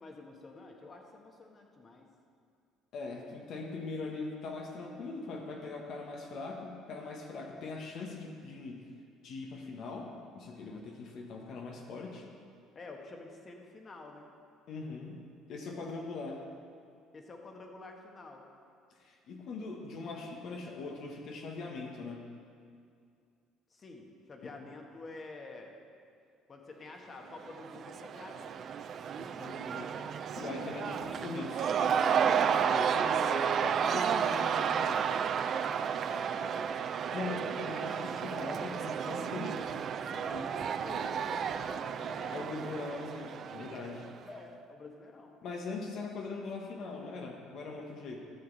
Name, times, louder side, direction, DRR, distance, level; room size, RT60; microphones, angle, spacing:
voice 1, 0.0-2.1 12.7-14.3 17.1-18.5 23.7-25.7 26.5-28.6 35.9-36.7 40.5-42.5 44.2-45.4, left 3 dB, 35° left, 2 dB, 1.4 m, -49 dB
voice 2, 2.9-8.8 9.2-12.3 14.7-15.2 15.5-16.4 19.0-22.2 24.6-24.7 29.2-29.9 30.3-35.0 37.1-39.8 40.1-40.5 42.3-44.1 45.4-48.2, left 3 dB, 60° left, 1 dB, 1.3 m, -41 dB
Cheering / Crowd, 27.3-44.2, right 7 dB, 50° right, 0.4 m, -32 dB
13.5 x 7.0 x 4.1 m, 2.3 s
cardioid pair, 100°, 0 cm